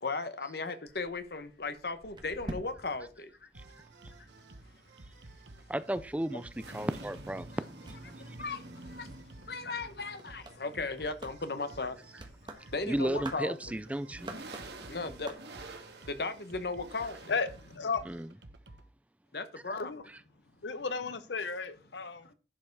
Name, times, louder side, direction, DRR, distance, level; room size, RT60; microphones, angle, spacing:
voice 1, 0.0-3.5 6.3-6.4 7.5-7.6 8.2-9.1 9.5-12.0 12.4-13.6 14.9-15.4 16.1-17.2 19.3-19.9 22.2-22.3, left 3 dB, 60° left, 1.1 m, -36 dB
sound 1, 0.9-4.3 4.6-15.8, right 1 dB, 25° right, 1.4 m, -50 dB
sound 2, 3.5-18.9, right 2 dB, 90° right, 1.2 m, -53 dB
sound 3, 3.6-17.8, right 2 dB, 75° right, 1.8 m, -51 dB
voice 2, 5.7-7.5 8.3-8.4 12.8-14.3 18.1-18.3 20.1-20.2, right 1 dB, 10° right, 0.4 m, -34 dB
voice 3, 17.3-18.1 19.8-20.0 20.6-22.2, left 4 dB, 90° left, 0.9 m, -34 dB
11.0 x 5.5 x 4.7 m
head